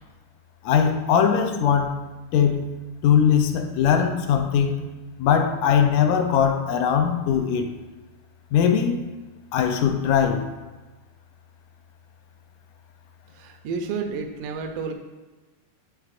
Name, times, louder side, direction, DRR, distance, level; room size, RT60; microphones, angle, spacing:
voice 1, 0.6-2.0 2.3-2.8 3.0-4.8 5.2-7.7 8.5-9.0 9.5-10.5, left 8 dB, 80° left, 6 dB, 1.7 m, -20 dB
voice 2, 13.3-14.9, right 5 dB, 80° right, 4 dB, 2.1 m, -31 dB
9.8 x 4.6 x 2.5 m, 1.2 s
omnidirectional pair, 3.7 m